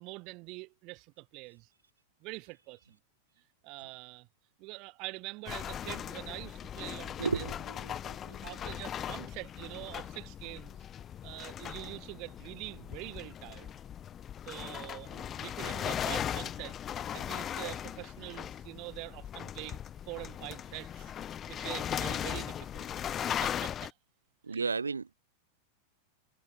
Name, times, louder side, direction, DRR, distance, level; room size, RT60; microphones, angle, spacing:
voice 1, 0.0-1.7 2.2-3.0 3.6-4.3 4.6-7.5 8.4-10.8 11.2-13.7 14.5-16.8 17.1-19.8 20.1-21.1 21.5-22.9 23.4-23.9 24.5-24.7, right 25 dB, 40° right, 6.2 m, -44 dB
sound 1, 5.5-23.9, left 9 dB, 25° left, 5.4 m, -38 dB
voice 2, 7.2-8.5 24.4-25.1, right 4 dB, 75° right, 5.1 m, -34 dB
figure-of-eight pair, 90°, 0 cm